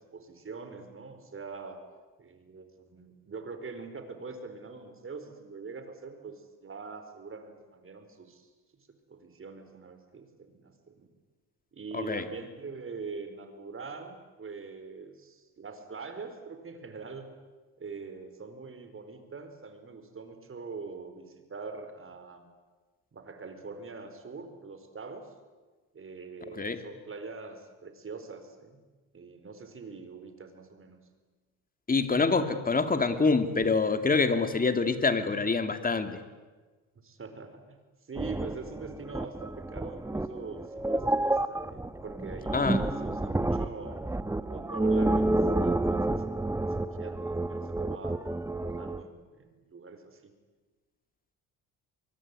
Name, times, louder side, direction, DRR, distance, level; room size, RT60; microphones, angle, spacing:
voice 1, 0.0-1.8 2.2-11.1 11.7-17.3 17.8-22.5 23.1-25.3 25.9-28.8 29.1-31.0 36.9-44.0 44.4-48.2 48.6-50.3, right 4 dB, 35° right, 8 dB, 4.6 m, -43 dB
voice 2, 11.9-12.2 26.6-26.8 31.9-36.2 42.5-42.8, left 4 dB, 25° left, 9 dB, 2.6 m, -26 dB
sound 1, 38.2-49.0, right 2 dB, 10° right, 1.1 m, -29 dB
23.5 x 23.0 x 9.8 m, 1.3 s
cardioid pair, 95°, 36 cm